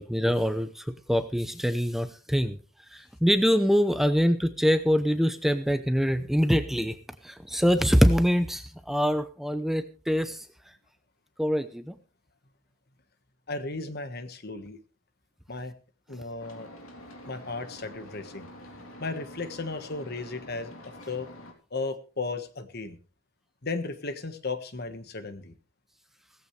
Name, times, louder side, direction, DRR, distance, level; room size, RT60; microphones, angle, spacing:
voice 1, 0.0-2.6 2.9-7.0 7.2-10.5 11.4-11.9, equal, ahead, 9 dB, 0.7 m, -24 dB
voice 2, 13.5-14.8 15.5-15.7 16.1-16.7 17.2-18.5 19.0-21.3 21.7-23.0 23.6-25.5, left 3 dB, 50° left, 10 dB, 1.5 m, -35 dB
sound 1, 16.4-21.5, equal, 80° left, 3.5 m, -46 dB
17.5 x 15.0 x 3.3 m, 0.37 s
head